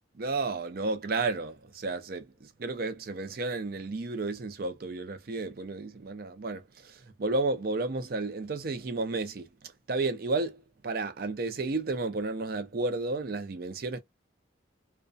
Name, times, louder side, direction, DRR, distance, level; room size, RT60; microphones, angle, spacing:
voice 1, 0.2-14.0, right 3 dB, 50° right, 0.5 m, -32 dB
2.6 x 2.2 x 2.3 m
head